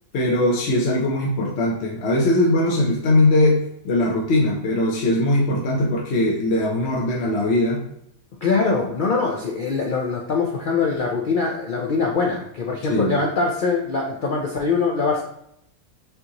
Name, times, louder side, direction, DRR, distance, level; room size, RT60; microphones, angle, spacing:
voice 1, 0.1-7.8 12.9-13.2, left 1 dB, 55° left, -2 dB, 0.9 m, -20 dB
voice 2, 8.4-15.2, left 4 dB, 75° left, -1 dB, 0.4 m, -23 dB
5.5 x 2.7 x 2.9 m, 0.76 s
omnidirectional pair, 1.5 m